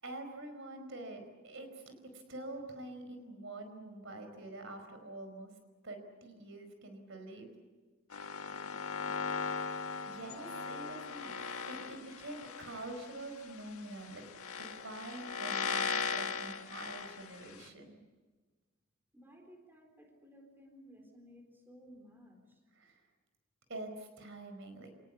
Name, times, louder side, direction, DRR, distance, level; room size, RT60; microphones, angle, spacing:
voice 1, 0.0-5.5 5.8-7.5 10.1-11.3 11.7-14.2 14.6-18.0 22.8-23.0 23.7-24.9, right 2 dB, 60° right, 6 dB, 4.9 m, -46 dB
sound 1, 8.1-17.7, left 5 dB, 85° left, 1.7 m, -39 dB
voice 2, 8.4-9.5 19.1-22.6, equal, 10° right, 2 dB, 3.9 m, -58 dB
27.5 x 19.5 x 8.5 m, 1.3 s
head